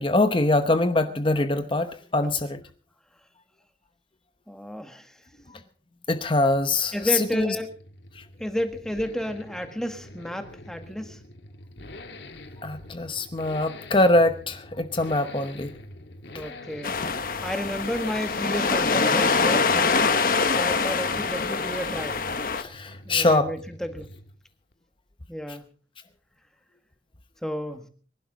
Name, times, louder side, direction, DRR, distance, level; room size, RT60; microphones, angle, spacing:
voice 1, 0.0-2.6 6.1-7.6 8.2-8.3 12.6-15.7 22.6-23.5, left 2 dB, 30° left, 9 dB, 0.9 m, -23 dB
voice 2, 4.5-5.1 6.9-7.7 8.4-11.2 16.3-17.0 17.4-20.0 20.5-22.2 23.0-24.1 25.3-25.6 27.4-27.9, equal, 5° left, 7 dB, 1.6 m, -32 dB
Accelerating revving vroom, 6.6-24.5 24.7-24.8, left 2 dB, 80° left, 1.7 m, -44 dB
sound 1, 16.8-22.6, left 4 dB, 50° left, 1.2 m, -24 dB
24.0 x 11.5 x 4.0 m, 0.41 s
head